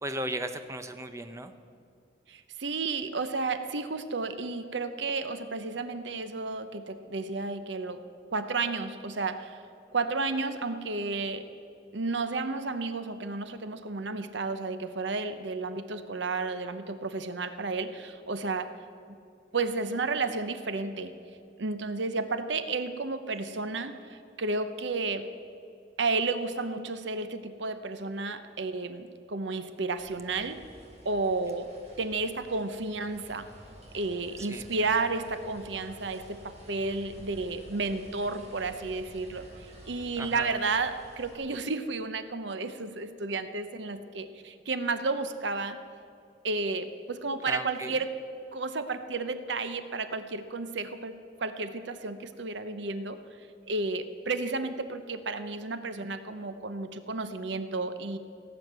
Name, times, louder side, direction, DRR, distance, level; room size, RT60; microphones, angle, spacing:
voice 1, 0.0-1.5 34.4-34.6 40.2-40.6 47.5-47.9, right 1 dB, 15° right, 8 dB, 0.8 m, -36 dB
voice 2, 2.3-8.0 8.3-9.6 9.9-11.4 11.9-18.7 19.5-21.1 21.6-25.3 26.0-30.6 31.0-31.7 32.0-33.5 33.9-45.8 46.4-48.1 48.5-53.2 53.7-58.2, right 3 dB, 65° right, 10 dB, 0.8 m, -32 dB
sound 1, 30.0-41.4, equal, 35° right, 4.4 m, -51 dB
17.5 x 7.9 x 7.9 m, 2.4 s
head